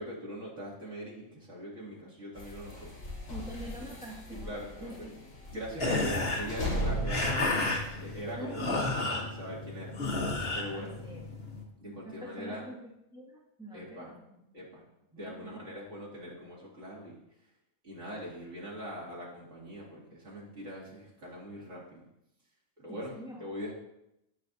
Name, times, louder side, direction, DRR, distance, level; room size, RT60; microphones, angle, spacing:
voice 1, 0.0-2.9 3.8-3.9 4.3-5.1 5.5-7.7 8.0-9.9 10.5-11.0 11.8-12.6 13.7-14.1 14.5-14.8 15.1-17.2 17.8-22.1 22.8-23.7, equal, 70° right, -5 dB, 2.9 m, -42 dB
sound 1, 2.3-8.3, equal, 85° left, 3.3 m, -38 dB
voice 2, 3.3-5.1 8.4-8.8 10.7-11.3 11.9-14.2 15.3-15.6 22.9-23.5, right 1 dB, 5° right, -5 dB, 1.8 m, -45 dB
sound 2, 5.8-11.6, left 2 dB, 50° left, 1.5 m, -32 dB
13.5 x 5.7 x 2.7 m, 0.84 s
omnidirectional pair, 1.4 m